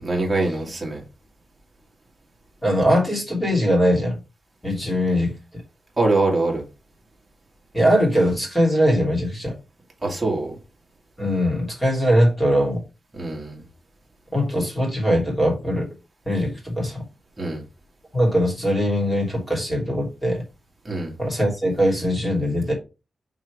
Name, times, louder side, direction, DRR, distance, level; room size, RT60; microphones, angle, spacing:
voice 1, 0.0-1.0 6.0-6.6 10.0-10.5 13.1-13.6 17.4-17.6 20.8-21.1, right 2 dB, 20° right, 2.2 m, -23 dB
voice 2, 2.6-4.2 4.6-5.4 7.7-9.6 11.2-12.8 14.3-15.9 16.2-17.0 18.1-20.4 21.2-22.7, equal, 15° left, 3.1 m, -21 dB
6.2 x 3.8 x 4.9 m
wide cardioid pair, 155°, 0 cm